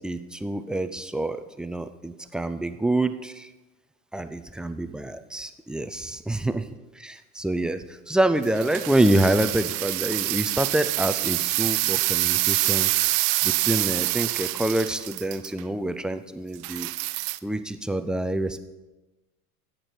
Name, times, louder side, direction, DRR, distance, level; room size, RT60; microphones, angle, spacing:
voice 1, 0.0-3.5 4.1-6.7 7.0-12.9 13.4-16.9 17.4-18.6, right 1 dB, ahead, 10 dB, 0.3 m, -26 dB
sound 1, 8.4-15.6 16.6-17.4, right 19 dB, 45° right, 0.6 m, -26 dB
13.0 x 8.8 x 4.5 m, 1.1 s
hypercardioid pair, 80°, 44 cm